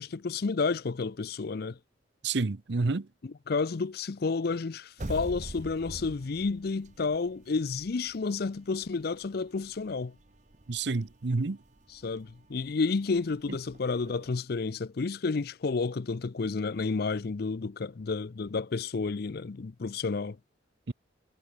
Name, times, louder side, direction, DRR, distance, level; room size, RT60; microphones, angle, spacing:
voice 1, 0.0-1.8 3.2-10.1 11.9-20.4, left 4 dB, 50° left, 0.5 m, -31 dB
voice 2, 2.2-3.1 10.7-11.6 20.9-21.0, right 3 dB, 60° right, 0.7 m, -29 dB
sound 1, 5.0-14.3, right 1 dB, 40° right, 1.1 m, -46 dB
head